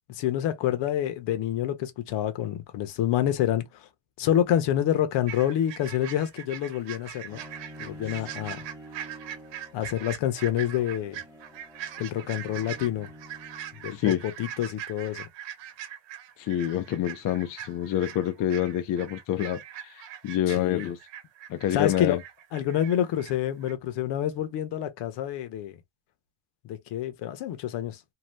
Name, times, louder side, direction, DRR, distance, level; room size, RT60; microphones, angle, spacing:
voice 1, 0.2-3.7 4.2-7.4 7.8-8.6 9.7-11.2 12.0-13.1 13.8-14.0 14.4-15.3 20.5-20.9 21.7-22.2 22.5-25.7 26.6-28.0, left 11 dB, 65° left, 1.0 m, -27 dB
sound 1, 5.3-23.3 23.6-23.7, right 10 dB, 70° right, 1.0 m, -41 dB
Bowed string instrument, 7.3-14.3, right 1 dB, 5° right, 1.0 m, -48 dB
voice 2, 13.9-14.3 16.4-21.0 21.5-22.2, left 11 dB, 45° left, 0.5 m, -27 dB
2.8 x 2.1 x 3.3 m
cardioid pair, 115°, 45 cm